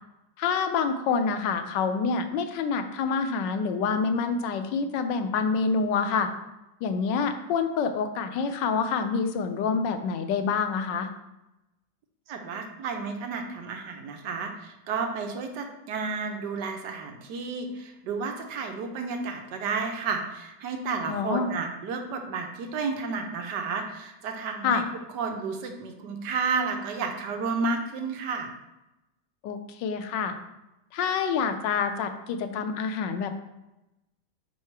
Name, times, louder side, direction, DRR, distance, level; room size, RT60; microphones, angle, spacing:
voice 1, 0.4-6.3 6.8-11.1 21.1-21.5 24.6-24.8 29.4-30.3 30.9-33.3, left 5 dB, 90° left, 8 dB, 1.3 m, -27 dB
voice 2, 12.3-24.8 25.1-28.5, right 4 dB, 75° right, 4 dB, 1.4 m, -31 dB
5.5 x 4.7 x 4.6 m, 0.95 s
omnidirectional pair, 1.9 m